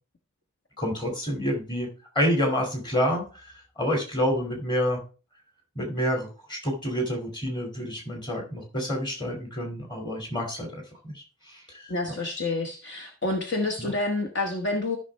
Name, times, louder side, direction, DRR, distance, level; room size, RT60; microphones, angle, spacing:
voice 1, 0.8-1.9 2.2-3.3 3.8-5.0 5.8-11.1 11.7-12.2 13.8-13.9, equal, 20° left, 2 dB, 2.4 m, -28 dB
voice 2, 11.9-15.0, left 2 dB, 55° left, 3 dB, 1.2 m, -28 dB
13.5 x 5.8 x 3.3 m, 0.35 s
head